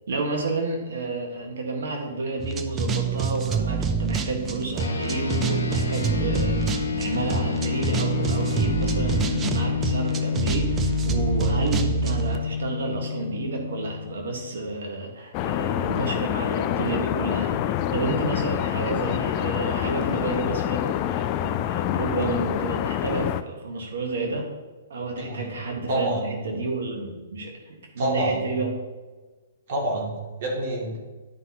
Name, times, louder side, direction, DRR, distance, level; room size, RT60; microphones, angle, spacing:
voice 1, 0.1-24.4 24.9-28.7, right 3 dB, 70° right, 2 dB, 1.7 m, -30 dB
sound 1, 2.4-12.4, right 5 dB, 20° right, 0.6 m, -27 dB
sound 2, 4.8-14.5, left 6 dB, 75° left, 1.2 m, -29 dB
sound 3, 15.3-23.4, left 12 dB, 35° left, 0.4 m, -26 dB
voice 2, 25.2-25.5 25.9-26.4 28.0-28.4 29.7-31.0, right 1 dB, 50° right, -2 dB, 2.6 m, -27 dB
10.5 x 5.6 x 3.0 m, 1.3 s
hypercardioid pair, 130°, 0 cm